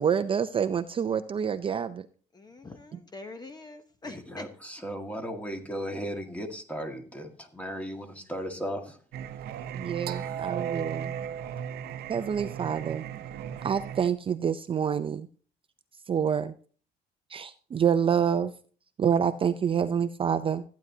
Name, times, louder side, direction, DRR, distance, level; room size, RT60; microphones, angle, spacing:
voice 1, 0.0-2.1 9.7-11.2 12.1-13.0 13.6-15.3 16.1-16.5 17.3-18.5 19.0-20.6, right 7 dB, 30° right, 11 dB, 0.5 m, -27 dB
voice 2, 2.3-4.5, left 3 dB, 25° left, 8 dB, 0.9 m, -44 dB
voice 3, 4.0-9.0, equal, 10° left, 4 dB, 1.8 m, -36 dB
Singing, 9.1-14.1, right 8 dB, 70° right, 0.8 m, -36 dB
14.5 x 9.3 x 2.8 m, 0.43 s
cardioid pair, 110°, 17 cm